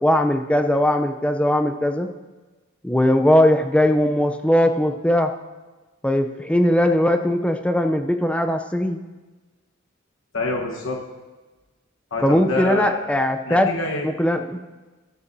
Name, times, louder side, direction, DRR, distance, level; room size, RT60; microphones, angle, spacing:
voice 1, 0.0-2.1 2.8-5.3 6.0-9.0 12.2-13.7 14.2-14.6, left 1 dB, 5° left, 6 dB, 0.5 m, -19 dB
voice 2, 10.3-11.0 12.1-13.0 13.5-14.1, left 2 dB, 65° left, 0 dB, 1.2 m, -26 dB
13.5 x 13.5 x 2.7 m, 1.2 s
head